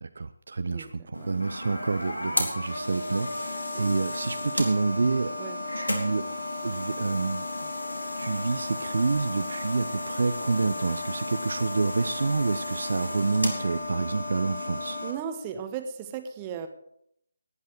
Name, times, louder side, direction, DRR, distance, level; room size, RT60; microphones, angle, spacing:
voice 1, 0.0-5.4 5.7-6.3 6.6-7.6 8.2-15.0, right 3 dB, 55° right, 11 dB, 0.6 m, -28 dB
sound 1, 1.1-15.1, left 1 dB, 75° left, 3.5 m, -33 dB
voice 2, 15.0-16.7, right 7 dB, 20° right, 8 dB, 1.2 m, -36 dB
18.0 x 10.5 x 4.7 m, 0.72 s
figure-of-eight pair, 150°, 0 cm